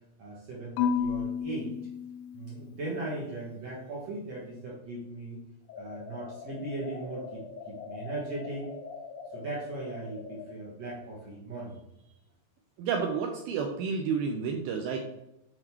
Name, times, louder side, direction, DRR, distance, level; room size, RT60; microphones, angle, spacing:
voice 1, 0.2-1.8 2.3-5.4 5.8-8.7 9.3-11.7, right 2 dB, 55° right, -5 dB, 1.8 m, -38 dB
Marimba xylophone / Wood, 0.8-3.0, left 7 dB, 90° left, 2.9 m, -32 dB
sound 1, 5.7-10.6, left 6 dB, 70° left, 1.6 m, -43 dB
voice 2, 12.8-15.0, right 6 dB, 80° right, 3 dB, 2.3 m, -30 dB
7.9 x 4.0 x 4.4 m, 0.87 s
omnidirectional pair, 4.8 m